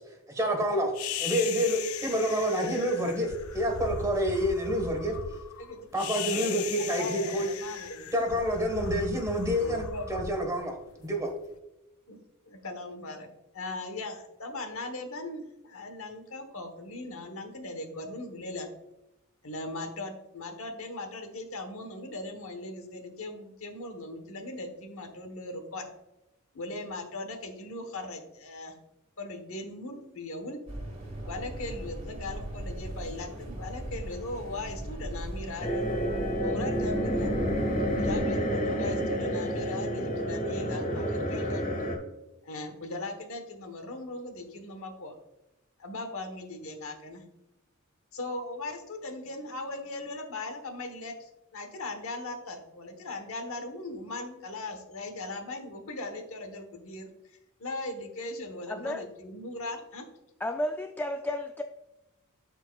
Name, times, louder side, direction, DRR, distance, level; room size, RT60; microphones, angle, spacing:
voice 1, 0.3-0.9 1.2-5.1 5.9-7.5 8.1-10.7 11.0-11.3, equal, 15° right, 2 dB, 1.3 m, -28 dB
sound 1, 0.9-11.3, left 7 dB, 90° left, 0.5 m, -38 dB
voice 2, 6.1-8.6 9.5-10.5 12.1-12.2 12.5-13.3 13.5-18.7 19.4-25.9 26.5-28.7 29.2-30.6 31.2-35.8 36.4-37.3 37.9-41.6 42.4-45.2 45.8-47.2 48.1-60.0, left 2 dB, 70° left, 6 dB, 1.2 m, -39 dB
sound 2, 30.7-38.2, right 1 dB, 30° right, 1.9 m, -39 dB
sound 3, 35.6-42.0, equal, 40° left, 1.5 m, -29 dB
voice 3, 58.7-59.0 60.4-61.6, left 1 dB, 10° left, 5 dB, 0.3 m, -32 dB
12.0 x 4.4 x 2.3 m, 0.96 s
head